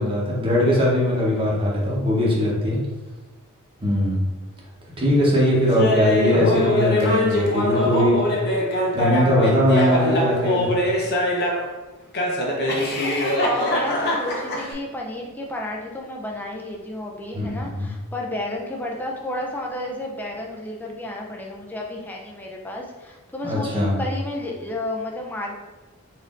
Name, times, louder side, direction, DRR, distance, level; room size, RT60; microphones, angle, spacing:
voice 1, 0.0-2.8 3.8-4.2 5.0-8.2 8.9-10.7 17.3-17.9 23.4-24.0, left 1 dB, 25° right, -5 dB, 1.0 m, -20 dB
Laughter, 5.8-11.7 12.1-14.7, left 1 dB, 50° left, 0.7 m, -22 dB
voice 2, 13.4-25.6, left 1 dB, 10° left, -1 dB, 0.4 m, -31 dB
4.1 x 2.6 x 3.6 m, 1.2 s
head